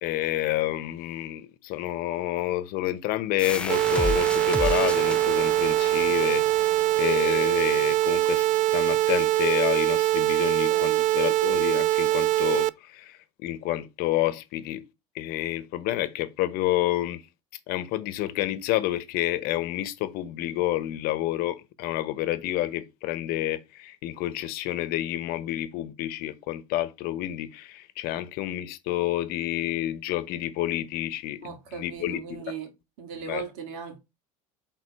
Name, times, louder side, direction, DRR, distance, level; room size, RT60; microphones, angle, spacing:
voice 1, 0.0-6.7 7.0-14.8 15.1-17.2 17.7-32.4 33.3-33.4, left 14 dB, 60° left, 0.9 m, -29 dB
sound 1, 3.4-8.8, left 1 dB, 5° left, 0.5 m, -34 dB
sound 2, 3.7-12.7, right 15 dB, 50° right, 0.4 m, -23 dB
voice 2, 10.7-11.1 31.4-32.7 33.0-34.0, right 6 dB, 75° right, 2.3 m, -38 dB
6.4 x 4.0 x 5.3 m
supercardioid pair, 105°, 17 cm